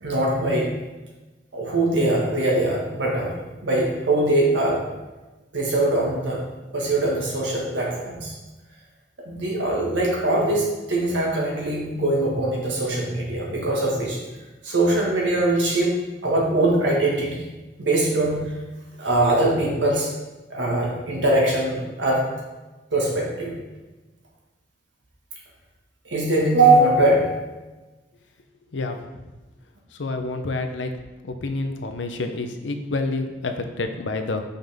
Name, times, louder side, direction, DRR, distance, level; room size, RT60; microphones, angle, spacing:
voice 1, 0.0-0.7 1.5-4.8 5.5-6.4 6.7-8.3 9.3-14.2 14.6-15.9 16.2-17.4 17.8-18.4 19.0-20.1 20.5-22.3 22.9-23.5 26.1-27.4, right 2 dB, 80° right, -3 dB, 1.7 m, -22 dB
voice 2, 30.0-30.9 31.2-34.4, left 3 dB, 85° left, 6 dB, 0.6 m, -28 dB
5.6 x 5.5 x 3.5 m, 1.1 s
head